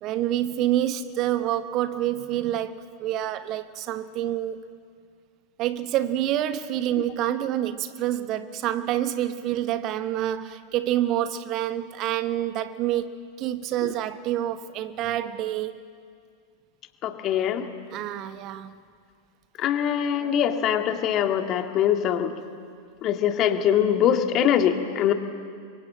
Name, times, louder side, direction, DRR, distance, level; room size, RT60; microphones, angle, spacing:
voice 1, 0.0-4.6 5.6-15.8 17.9-18.7, right 12 dB, 35° right, 1.0 m, -27 dB
voice 2, 17.0-17.7 19.6-22.3 23.0-25.1, left 9 dB, 35° left, 2.0 m, -23 dB
29.0 x 24.0 x 7.7 m
figure-of-eight pair, 90°, 0 cm